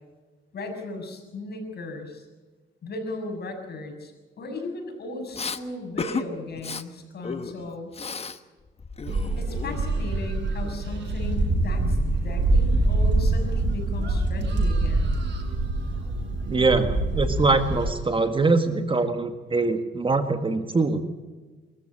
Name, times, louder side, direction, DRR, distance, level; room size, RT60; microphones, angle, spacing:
voice 1, 0.5-2.2 2.8-4.1 4.4-7.9 9.4-15.1, left 2 dB, 55° left, 4 dB, 6.7 m, -36 dB
Respiratory sounds, 5.3-5.6 6.0-6.3 6.6-6.8 7.2-8.4 8.7-10.1, left 4 dB, 30° left, 1.2 m, -33 dB
sound 1, 9.1-17.9, right 2 dB, 60° right, 7.4 m, -25 dB
voice 2, 16.5-21.0, right 3 dB, 25° right, 7 dB, 1.8 m, -23 dB
24.0 x 14.0 x 8.7 m, 1.3 s
cardioid pair, 90°, 20 cm